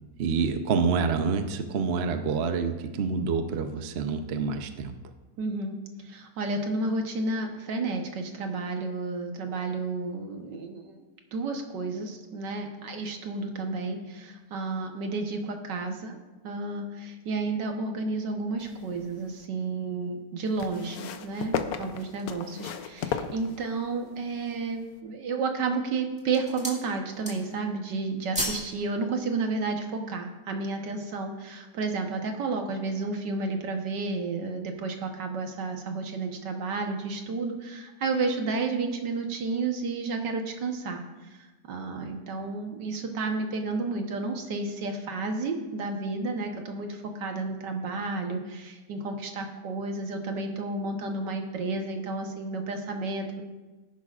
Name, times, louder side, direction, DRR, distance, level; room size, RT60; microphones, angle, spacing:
voice 1, 0.2-4.9, right 5 dB, 50° right, 7 dB, 0.8 m, -27 dB
voice 2, 5.4-5.8 6.0-11.0 11.3-16.2 16.4-41.0 41.7-53.4, right 3 dB, 75° right, 4 dB, 1.8 m, -31 dB
sound 1, 18.6-19.5 20.6-24.0 24.9-25.0, left 8 dB, 65° left, 1.1 m, -35 dB
sound 2, 22.2-23.0 23.6-23.7 24.1-24.7 25.4-25.7 26.1-26.9 27.1-27.7 27.9-28.7 29.0-29.2, equal, 5° right, 1.8 m, -35 dB
18.0 x 10.5 x 2.5 m, 1.2 s
omnidirectional pair, 1.9 m